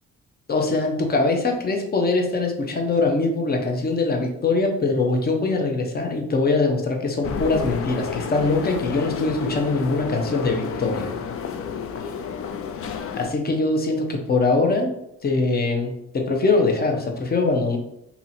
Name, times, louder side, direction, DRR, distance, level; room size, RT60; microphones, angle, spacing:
voice 1, 0.5-11.2 13.1-15.0 15.2-17.8, left 3 dB, 30° left, 3 dB, 0.8 m, -22 dB
sound 1, 7.2-13.3, left 6 dB, 50° left, 0.4 m, -30 dB
2.8 x 2.8 x 4.2 m, 0.82 s
cardioid pair, 90°, 30 cm